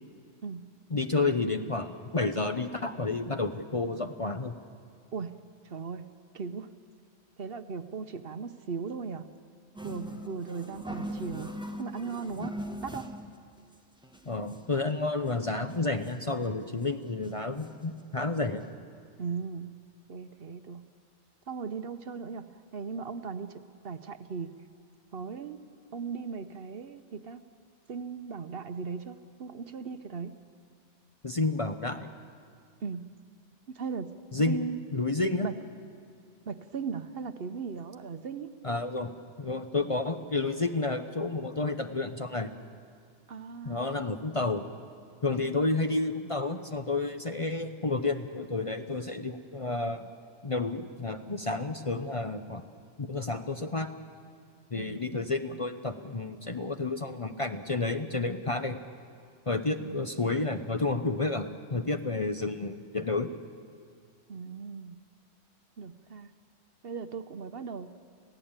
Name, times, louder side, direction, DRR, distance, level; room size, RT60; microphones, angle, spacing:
voice 1, 0.9-4.6 14.3-18.7 31.2-32.1 34.3-34.6 34.9-35.5 38.6-39.1 39.4-42.5 43.6-44.7 45.2-50.1 50.4-52.6 53.0-53.9 54.7-58.8 59.5-63.3, left 3 dB, 30° left, 7 dB, 0.8 m, -30 dB
voice 2, 5.6-6.1 6.3-6.7 7.4-9.3 9.8-11.5 11.8-13.1 19.2-19.8 20.1-20.8 21.5-24.5 25.1-25.6 25.9-27.4 27.9-30.3 32.8-33.1 33.7-34.1 34.4-34.8 35.4-35.5 36.5-38.5 43.3-43.8 54.7-55.0 59.8-60.0 64.3-65.0 65.8-66.3 66.8-67.9, right 5 dB, 55° right, 10 dB, 1.0 m, -38 dB
sound 1, 9.8-13.4 13.7-13.8 14.0-14.8 15.3-15.4 15.6-16.4 16.8-16.9 17.2-17.9 18.4-18.5 18.7-18.8, equal, 5° right, 1.2 m, -40 dB
28.0 x 16.5 x 8.9 m, 2.3 s
omnidirectional pair, 1.2 m